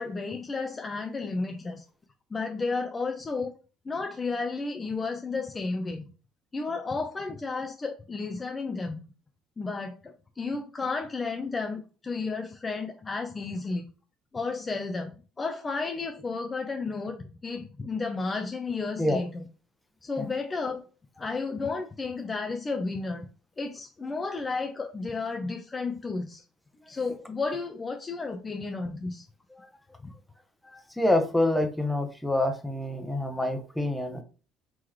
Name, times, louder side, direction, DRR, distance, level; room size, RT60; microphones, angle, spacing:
voice 1, 0.0-1.8 2.3-3.5 3.9-6.0 6.5-9.0 9.6-13.8 14.3-15.1 15.4-19.4 20.0-20.8 21.2-23.3 23.6-26.4 26.9-29.3, left 4 dB, 25° left, 4 dB, 0.5 m, -32 dB
voice 2, 30.6-34.2, left 1 dB, 5° left, 5 dB, 0.9 m, -27 dB
3.8 x 3.0 x 3.0 m, 0.36 s
supercardioid pair, 75°, 0 cm